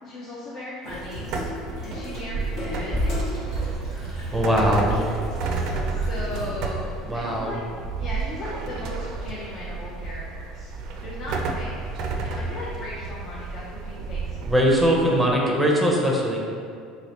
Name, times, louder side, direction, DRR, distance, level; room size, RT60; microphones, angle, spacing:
voice 1, 0.0-1.3 1.8-3.2 3.6-3.7 5.9-7.6 8.0-10.7 11.0-11.8 12.2-15.0, left 2 dB, 50° left, -7 dB, 0.6 m, -37 dB
Water tap faucet / Sink (filling or washing), 0.8-6.9, left 1 dB, 70° left, 1.2 m, -39 dB
sound 1, 0.9-15.2, right 4 dB, 65° right, 0.4 m, -31 dB
sound 2, 2.9-4.7, equal, 15° left, 1.0 m, -30 dB
voice 2, 4.3-5.0 7.1-7.5 14.5-16.4, equal, 5° right, -2 dB, 0.6 m, -21 dB
3.0 x 2.9 x 2.9 m, 2.2 s
supercardioid pair, 100°, 0 cm